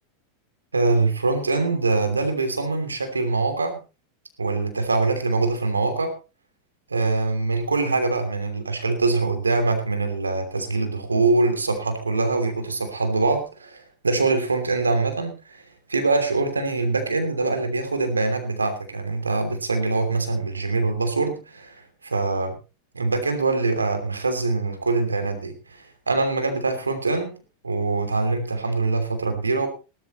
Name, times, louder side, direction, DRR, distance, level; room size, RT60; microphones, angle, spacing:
voice 1, 0.7-3.8 4.4-6.1 6.9-15.6 15.9-22.6 22.9-27.3 27.6-29.7, right 3 dB, 90° right, 7 dB, 3.0 m, -24 dB
18.5 x 13.0 x 3.1 m, 0.31 s
hypercardioid pair, 90°, 0 cm